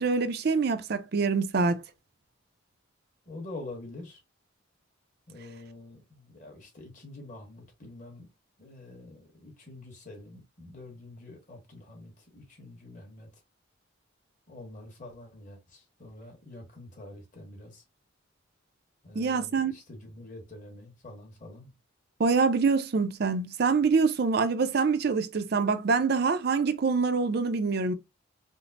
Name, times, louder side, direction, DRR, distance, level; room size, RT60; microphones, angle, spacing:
voice 1, 0.0-1.8 19.2-19.7 22.2-27.9, right 4 dB, 50° right, 0.4 m, -25 dB
voice 2, 3.3-4.2 5.3-8.3 8.6-13.3 14.5-17.8 19.0-21.7, left 2 dB, 40° left, 1.3 m, -46 dB
5.1 x 2.0 x 2.4 m
head